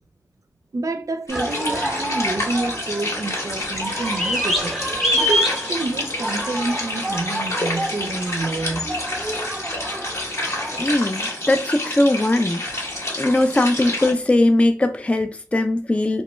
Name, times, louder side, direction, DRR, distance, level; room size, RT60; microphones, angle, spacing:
voice 1, 0.7-4.7 5.1-8.9, right 2 dB, 55° right, 0.5 m, -28 dB
sound 1, 1.3-14.1, left 1 dB, 45° left, 1.0 m, -29 dB
sound 2, 1.3-10.9, equal, ahead, 0.8 m, -27 dB
voice 2, 10.8-12.6 13.2-16.2, left 1 dB, 20° left, 0.3 m, -19 dB
3.0 x 2.2 x 3.0 m
cardioid pair, 45°, 7 cm